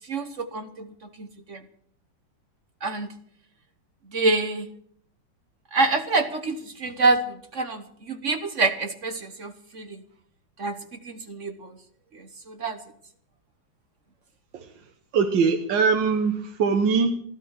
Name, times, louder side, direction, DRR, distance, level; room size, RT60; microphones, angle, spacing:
voice 1, 0.1-0.9 1.2-1.6 2.8-3.1 4.1-4.7 5.7-10.0 10.6-10.8 11.0-11.7 12.1-12.8, right 3 dB, 45° right, 8 dB, 1.3 m, -26 dB
voice 2, 15.1-17.1, right 5 dB, 70° right, 5 dB, 1.8 m, -22 dB
16.0 x 12.5 x 6.4 m, 0.65 s
omnidirectional pair, 2.1 m